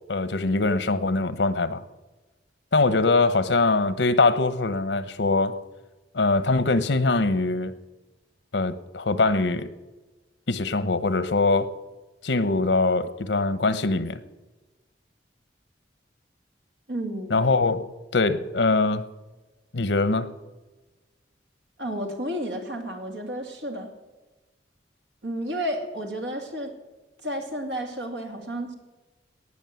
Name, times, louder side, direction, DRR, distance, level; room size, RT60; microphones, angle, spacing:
voice 1, 0.1-1.8 2.7-5.6 6.1-7.7 8.5-9.7 10.5-11.7 12.2-14.2 17.3-19.1 19.7-20.3, left 3 dB, 85° left, 1.0 m, -23 dB
voice 2, 16.9-17.4 21.8-23.9 25.2-26.8 27.2-28.7, equal, 75° right, 2.5 m, -31 dB
18.5 x 6.3 x 9.2 m
head